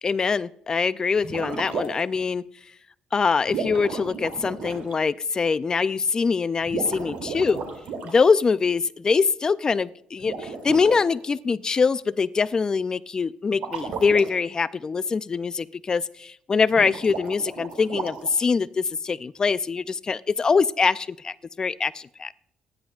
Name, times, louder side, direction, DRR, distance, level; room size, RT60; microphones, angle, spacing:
voice 1, 0.0-2.5 3.1-7.6 8.0-22.3, left 5 dB, 30° left, 15 dB, 0.4 m, -23 dB
sound 1, 1.2-2.2 3.5-4.9 6.6-8.1 10.2-11.0 13.5-14.3 16.7-18.4, right 4 dB, 80° right, 2.7 m, -33 dB
26.0 x 10.0 x 2.4 m, 0.72 s
cardioid pair, 105°, 2 cm